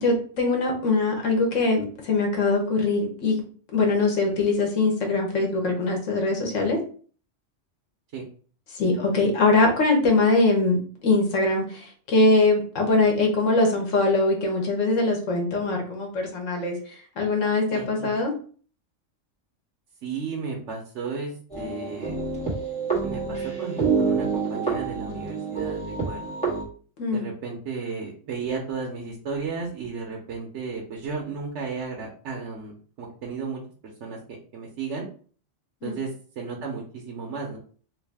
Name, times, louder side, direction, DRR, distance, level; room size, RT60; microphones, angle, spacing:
voice 1, 0.0-3.4 3.7-6.8 8.7-10.8 11.0-18.3 27.0-27.3 35.8-36.0, left 3 dB, 85° left, 2 dB, 1.3 m, -22 dB
voice 2, 17.7-18.1 20.0-22.1 23.0-26.4 27.1-35.1 35.8-36.1 36.4-37.6, right 5 dB, 70° right, -1 dB, 1.0 m, -34 dB
sound 1, 21.5-26.6, right 5 dB, 5° left, 1.4 m, -27 dB
3.2 x 2.7 x 3.3 m, 0.43 s
omnidirectional pair, 1.3 m